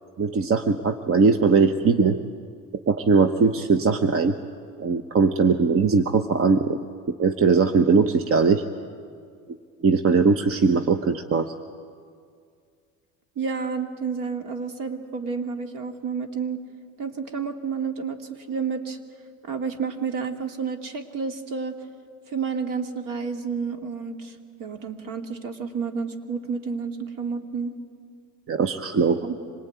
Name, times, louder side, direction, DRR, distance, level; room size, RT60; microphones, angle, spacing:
voice 1, 0.2-2.2 2.9-4.3 4.8-6.8 7.1-8.6 9.8-11.5 28.5-29.2, right 5 dB, 35° right, 8 dB, 1.1 m, -20 dB
voice 2, 13.4-16.6 17.0-18.2 18.5-19.0 19.5-21.8 22.3-27.7 29.2-29.4, right 5 dB, 55° right, 5 dB, 2.6 m, -30 dB
26.0 x 19.0 x 9.4 m, 2.2 s
supercardioid pair, 95°, 39 cm